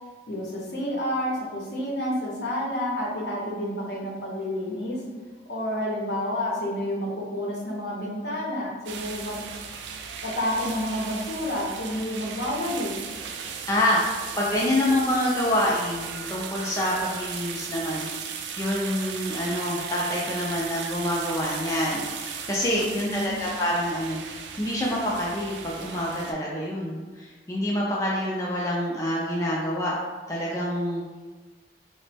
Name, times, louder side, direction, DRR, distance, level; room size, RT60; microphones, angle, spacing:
voice 1, 0.3-5.0 5.5-9.5 10.2-13.0 22.8-23.3, left 1 dB, 65° left, -4 dB, 0.7 m, -29 dB
sound 1, 8.8-26.3, right 6 dB, 75° right, 0.3 m, -37 dB
voice 2, 13.7-24.2 24.6-30.0 30.3-31.2, left 1 dB, 15° left, -5 dB, 0.3 m, -27 dB
2.9 x 2.0 x 3.2 m, 1.3 s
head